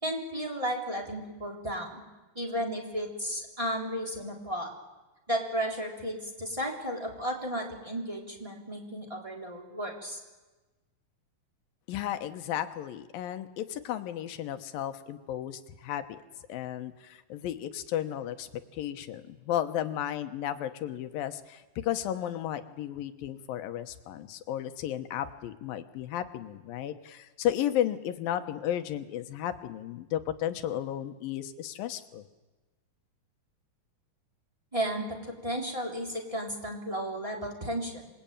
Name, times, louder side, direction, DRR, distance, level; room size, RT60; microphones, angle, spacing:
voice 1, 0.0-2.0 2.3-4.7 5.3-10.2 34.7-38.1, equal, 10° right, 0 dB, 3.3 m, -34 dB
voice 2, 11.9-16.2 16.5-32.2, left 11 dB, 85° left, 9 dB, 2.9 m, -34 dB
26.5 x 21.0 x 8.9 m, 1.2 s
omnidirectional pair, 4.0 m